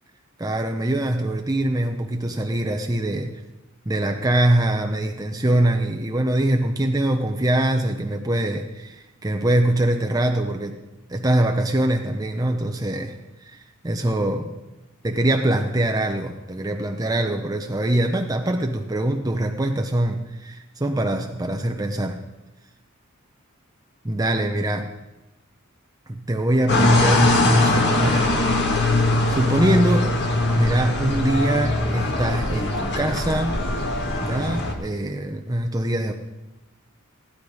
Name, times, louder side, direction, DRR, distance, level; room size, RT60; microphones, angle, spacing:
voice 1, 0.4-3.3 3.9-10.8 11.1-13.2 13.4-14.5 15.0-22.2 24.0-24.9 26.1-28.3 28.7-29.0 29.3-30.1 30.5-33.6 34.2-36.1, right 1 dB, 15° right, 4 dB, 0.7 m, -23 dB
sound 1, 26.7-34.7, left 2 dB, 55° left, 1.8 m, -21 dB
16.0 x 12.0 x 5.0 m, 1.0 s
head